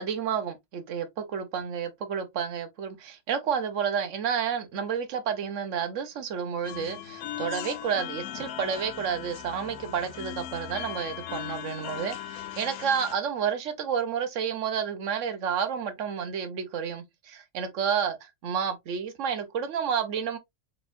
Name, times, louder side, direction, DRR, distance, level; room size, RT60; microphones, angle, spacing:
voice 1, 0.0-20.4, right 7 dB, 60° right, 1.1 m, -30 dB
sound 1, 6.6-13.1, left 11 dB, 85° left, 1.1 m, -38 dB
4.1 x 3.5 x 2.5 m
omnidirectional pair, 1.5 m